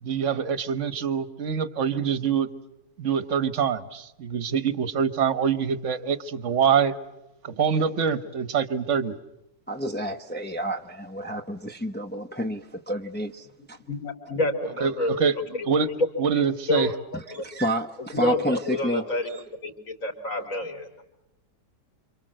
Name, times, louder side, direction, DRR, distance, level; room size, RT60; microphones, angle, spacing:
voice 1, 0.0-2.5 3.0-6.9 7.4-9.1 14.8-15.3 15.6-15.9 16.2-16.9, right 7 dB, 45° right, 15 dB, 1.3 m, -25 dB
voice 2, 9.7-13.8 17.4-19.4, equal, 10° left, 2 dB, 0.5 m, -30 dB
voice 3, 13.9-15.2 15.5-16.1 16.3-16.9 17.3-17.4 18.0-19.3 19.6-21.0, left 2 dB, 45° left, 3 dB, 4.3 m, -28 dB
28.0 x 26.5 x 7.7 m, 0.92 s
omnidirectional pair, 1.9 m